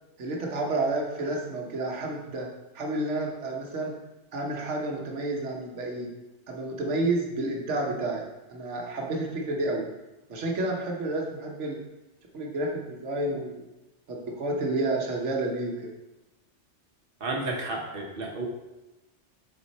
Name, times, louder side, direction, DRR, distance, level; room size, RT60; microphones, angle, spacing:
voice 1, 0.2-2.5 2.7-4.0 4.3-6.1 6.5-8.2 8.5-9.9 10.3-11.8 12.3-13.6 14.4-15.9, right 2 dB, 75° right, 0 dB, 1.3 m, -30 dB
voice 2, 17.2-18.4, right 2 dB, 50° right, 1 dB, 1.2 m, -32 dB
7.3 x 4.4 x 4.1 m, 1.0 s
omnidirectional pair, 1.2 m